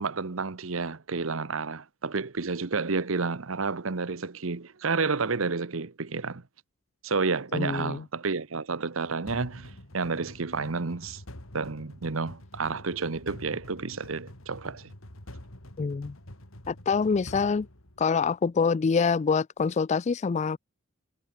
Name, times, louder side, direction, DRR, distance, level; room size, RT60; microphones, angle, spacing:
voice 1, 0.0-6.4 7.0-11.2 11.5-14.9, right 4 dB, 75° right, 1.0 m, -30 dB
voice 2, 7.5-8.0 15.8-16.1 16.7-17.7 18.0-20.6, left 5 dB, 35° left, 0.3 m, -25 dB
sound 1, 9.3-18.5, left 1 dB, 80° left, 4.7 m, -46 dB
head